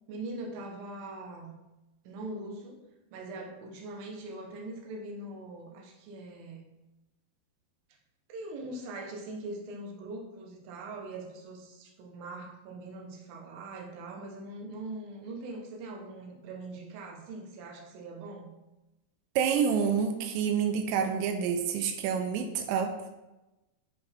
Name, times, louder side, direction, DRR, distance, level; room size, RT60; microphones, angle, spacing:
voice 1, 0.1-1.5 2.0-2.8 3.1-6.6 8.3-18.5, right 2 dB, 65° right, 0 dB, 2.8 m, -42 dB
voice 2, 19.4-22.9, right 7 dB, 90° right, 5 dB, 2.8 m, -28 dB
10.5 x 5.2 x 3.5 m, 1.0 s
omnidirectional pair, 4.9 m